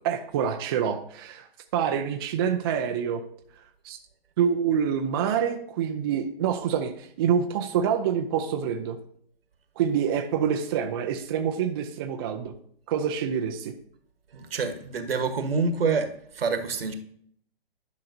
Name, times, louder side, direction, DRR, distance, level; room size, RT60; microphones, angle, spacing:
voice 1, 0.0-1.5 1.7-3.2 3.8-4.0 4.4-9.0 9.8-12.5 12.9-13.7, right 8 dB, 25° right, 0.5 m, -26 dB
voice 2, 14.3-16.9, right 4 dB, 70° right, 1.3 m, -27 dB
11.0 x 5.6 x 2.7 m
hypercardioid pair, 135°, 30 cm